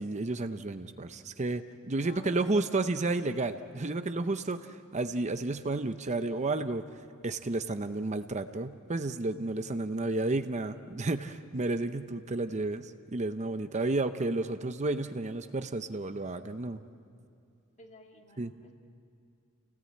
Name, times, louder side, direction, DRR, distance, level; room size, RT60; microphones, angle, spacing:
voice 1, 0.0-6.8 7.2-16.8 18.4-18.5, right 2 dB, 30° right, 9 dB, 0.7 m, -32 dB
voice 2, 2.0-2.4 17.8-18.7, left 2 dB, 30° left, 2 dB, 2.1 m, -51 dB
29.5 x 18.5 x 8.7 m, 2.6 s
head